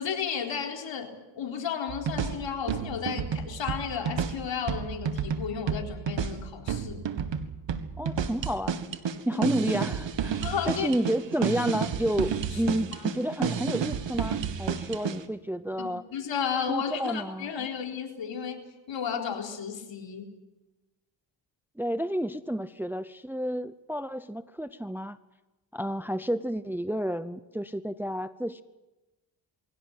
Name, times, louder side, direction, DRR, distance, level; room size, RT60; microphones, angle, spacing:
voice 1, 0.0-7.1 9.3-9.5 10.4-10.9 12.5-13.0 15.8-20.3, left 7 dB, 65° left, 2 dB, 4.2 m, -33 dB
sound 1, 1.9-15.2, right 7 dB, 65° right, 1.9 m, -31 dB
voice 2, 8.0-8.8 9.3-16.0 16.7-17.7 21.8-25.2 25.7-28.6, equal, 5° right, 13 dB, 0.7 m, -30 dB
23.0 x 17.0 x 9.0 m, 1.1 s
cardioid pair, 95°, 47 cm